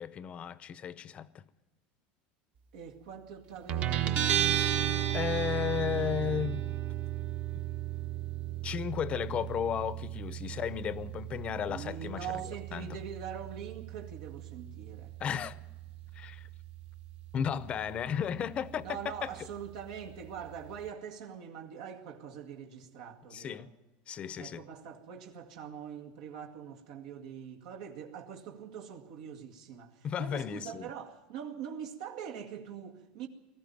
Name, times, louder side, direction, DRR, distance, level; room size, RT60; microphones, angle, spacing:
voice 1, 0.0-1.4 4.9-6.7 8.6-13.0 15.2-15.6 16.1-16.5 17.3-19.3 23.3-23.7 24.1-24.6 30.0-30.9, left 8 dB, 30° left, 0.7 m, -34 dB
voice 2, 2.7-4.5 11.7-15.1 18.8-23.7 24.4-33.3, right 8 dB, 85° right, 2.1 m, -43 dB
Guitar, 3.7-20.9, right 11 dB, 45° right, 1.1 m, -35 dB
19.0 x 14.5 x 9.4 m
supercardioid pair, 145°, 4 cm